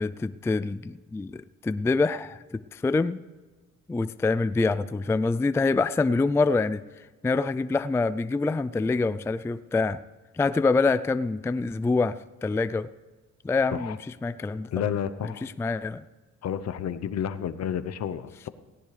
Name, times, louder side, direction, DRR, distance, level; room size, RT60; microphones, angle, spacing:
voice 1, 0.0-2.4 2.7-3.2 3.9-6.8 7.2-10.0 10.3-12.9 13.4-14.7 15.2-16.0, left 3 dB, 10° left, 14 dB, 0.3 m, -26 dB
voice 2, 14.7-15.5 16.4-18.5, left 9 dB, 60° left, 12 dB, 0.8 m, -30 dB
17.0 x 17.0 x 3.3 m, 1.3 s
cardioid pair, 90°, 30 cm